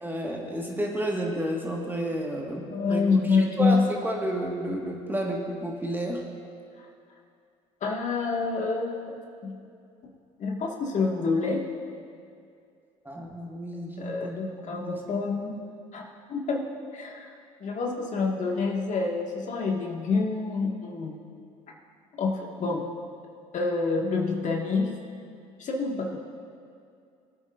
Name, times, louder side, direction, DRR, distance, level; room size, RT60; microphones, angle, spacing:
voice 1, 0.0-3.3 3.6-6.2 13.1-15.0, right 1 dB, 10° right, -1 dB, 1.7 m, -31 dB
voice 2, 2.7-3.9 7.8-9.2 9.4-9.7 10.4-11.7 14.0-15.5 15.9-17.3 17.6-21.2 22.2-22.8 23.5-25.0 25.6-26.2, left 4 dB, 50° left, 0 dB, 1.9 m, -27 dB
21.0 x 8.5 x 2.6 m, 2.4 s
hypercardioid pair, 70°, 16 cm